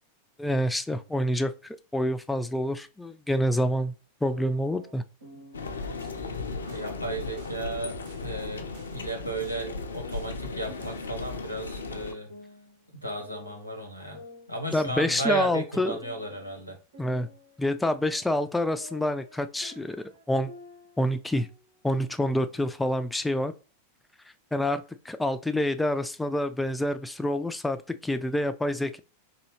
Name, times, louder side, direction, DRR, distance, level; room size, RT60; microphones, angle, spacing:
voice 1, 0.4-1.5 1.9-3.9 4.2-5.0 14.7-16.0 17.0-17.3 17.6-20.5 21.0-21.5 21.8-23.5 24.5-29.0, left 1 dB, 5° left, 10 dB, 0.3 m, -27 dB
sound 1, 4.2-5.7 6.2-6.7 7.5-9.2 9.6-11.2 11.5-13.7 14.1-16.6 16.9-21.0 21.3-21.7 22.2-23.2, left 2 dB, 75° right, 1.2 m, -50 dB
sound 2, 5.5-12.1, left 4 dB, 70° left, 0.4 m, -36 dB
sound 3, 5.7-11.1, right 6 dB, 50° right, 0.6 m, -50 dB
voice 2, 6.7-12.3 12.9-14.2 14.5-16.8, right 1 dB, 90° right, 1 dB, 1.0 m, -34 dB
3.9 x 2.7 x 3.1 m, 0.34 s
figure-of-eight pair, 90°, 0 cm